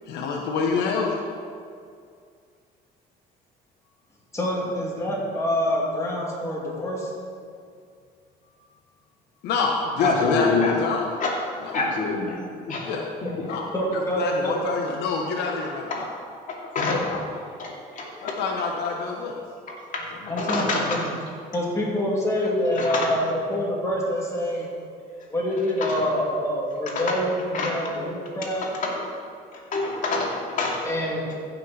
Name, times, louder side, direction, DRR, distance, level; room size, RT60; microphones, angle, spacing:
voice 1, 0.1-1.1 9.4-11.1 11.6-11.8 12.8-13.0 13.4-13.6 13.9-16.1 16.9-17.2 18.2-19.4 20.2-20.4 20.9-21.1, left 4 dB, 85° left, 0 dB, 1.1 m, -27 dB
voice 2, 4.3-7.1 13.7-14.5 20.3-21.1 21.5-24.7 25.3-28.7 30.8-31.3, equal, 15° left, -4 dB, 2.7 m, -26 dB
voice 3, 10.0-10.8 11.2-11.3 11.7-12.4 12.7-12.9 16.7-17.0 17.6-18.1 20.4-21.0 22.8-23.1 25.9-26.0 26.9-27.0 27.5-27.7 28.8-29.0 29.7-30.8, left 3 dB, 50° left, -2 dB, 2.4 m, -25 dB
15.0 x 6.2 x 4.4 m, 2.2 s
cardioid pair, 110°, 17 cm